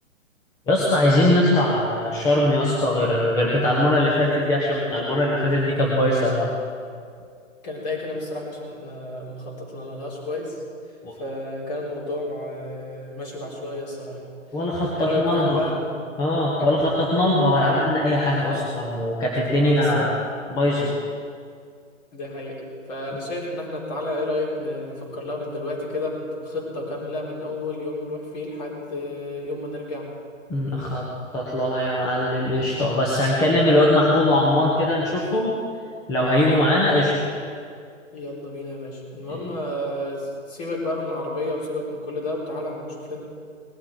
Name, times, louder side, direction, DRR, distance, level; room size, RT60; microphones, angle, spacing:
voice 1, 0.7-6.5 11.0-11.1 14.5-15.6 16.2-20.1 20.5-21.0 30.5-35.5 36.1-37.3 39.3-39.4, left 1 dB, 10° left, -3 dB, 1.0 m, -21 dB
voice 2, 7.6-10.6 11.2-14.2 14.9-16.0 16.6-17.0 17.6-17.8 18.2-18.7 19.6-20.2 22.1-30.1 33.7-34.2 38.1-43.2, left 1 dB, 30° left, -3 dB, 4.2 m, -31 dB
19.5 x 12.5 x 4.8 m, 2.2 s
figure-of-eight pair, 130°, 39 cm